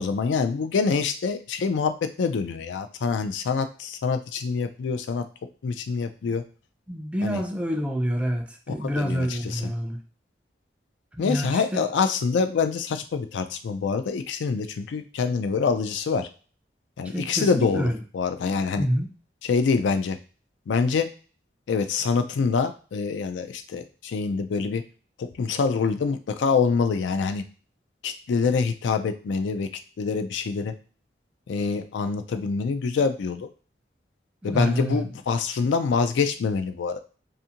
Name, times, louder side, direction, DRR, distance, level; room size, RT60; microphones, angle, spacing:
voice 1, 0.0-5.2 5.6-6.5 7.2-7.4 8.7-9.7 11.2-16.3 17.0-18.9 19.4-20.2 20.7-21.1 21.7-24.8 25.2-27.4 28.0-29.7 30.0-30.7 31.5-33.5 34.4-37.0, left 5 dB, 90° left, 8 dB, 0.3 m, -25 dB
voice 2, 6.9-10.0 11.2-11.8 17.0-18.0 18.8-19.1 34.4-35.0, equal, 5° right, 3 dB, 0.3 m, -27 dB
2.5 x 2.4 x 2.8 m, 0.37 s
head